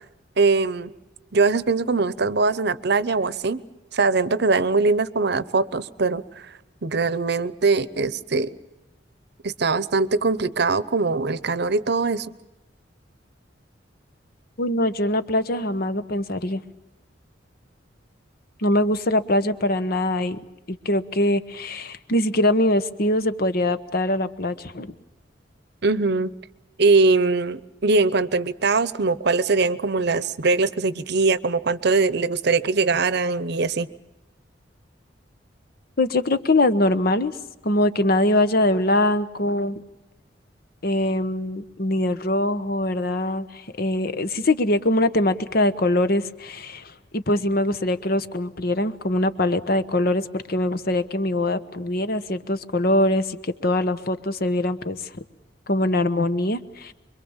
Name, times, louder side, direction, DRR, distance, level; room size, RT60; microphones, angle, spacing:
voice 1, 0.4-0.9 1.3-3.6 3.9-6.2 6.8-8.5 9.4-12.3 25.8-26.3 26.8-33.9, right 3 dB, 65° right, 17 dB, 0.9 m, -21 dB
voice 2, 14.6-16.6 18.6-20.4 20.7-24.9 36.0-37.3 37.6-39.8 40.8-55.2 55.7-56.9, left 1 dB, 55° left, 12 dB, 1.1 m, -23 dB
25.5 x 23.0 x 7.3 m, 0.98 s
head